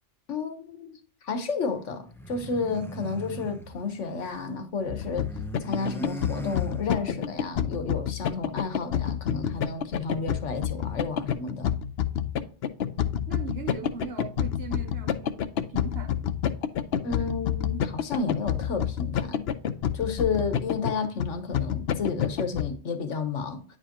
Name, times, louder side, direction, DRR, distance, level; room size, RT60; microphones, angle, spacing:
voice 1, 0.3-1.0 1.2-5.3 5.6-11.7 17.0-19.5 19.9-23.6, left 4 dB, 90° left, 1.4 m, -31 dB
sound 1, 2.0-4.5 4.8-7.3, equal, 5° left, 0.4 m, -40 dB
sound 2, 4.9-22.7, left 9 dB, 65° left, 0.8 m, -28 dB
voice 2, 13.3-16.3, right 6 dB, 65° right, 0.8 m, -39 dB
9.6 x 4.9 x 2.9 m
omnidirectional pair, 1.2 m